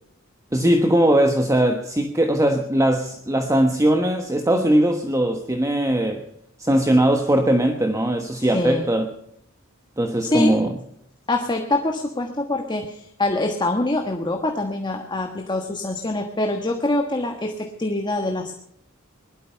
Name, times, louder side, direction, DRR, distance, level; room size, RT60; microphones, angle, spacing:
voice 1, 0.5-6.3 6.6-9.1 10.0-10.7, right 1 dB, 15° right, 5 dB, 1.2 m, -20 dB
voice 2, 8.3-8.8 10.2-10.6 11.3-18.5, left 2 dB, 20° left, 4 dB, 1.4 m, -25 dB
20.0 x 12.5 x 5.7 m, 0.73 s
head